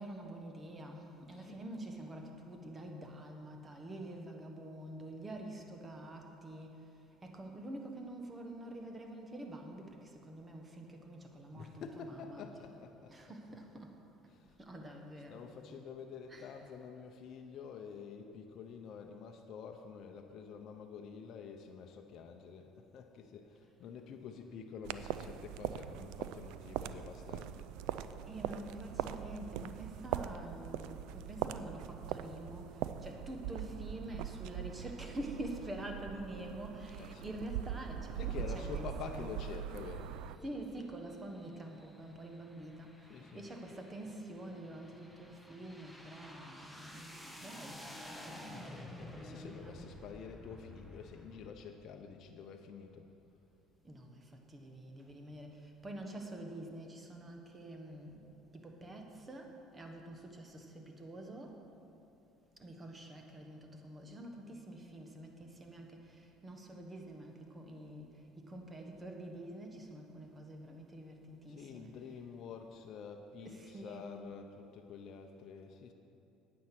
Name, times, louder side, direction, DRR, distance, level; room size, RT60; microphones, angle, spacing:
voice 1, 0.0-12.8 13.1-14.0 14.5-15.5 16.3-16.8 28.3-39.4 40.4-49.9 53.8-61.7 62.6-72.2 73.4-74.2, right 1 dB, 20° right, 3 dB, 1.3 m, -47 dB
voice 2, 1.3-1.6 11.5-13.8 14.3-14.6 15.1-27.7 36.9-37.4 38.1-40.2 43.0-43.5 49.0-53.1 71.5-75.9, left 6 dB, 55° left, 4 dB, 0.7 m, -48 dB
sound 1, 24.8-40.4, right 10 dB, 75° right, 0.3 m, -41 dB
sound 2, 39.8-51.5, left 1 dB, 5° right, 1.1 m, -52 dB
9.3 x 8.8 x 6.0 m, 2.8 s
cardioid pair, 110°, 0 cm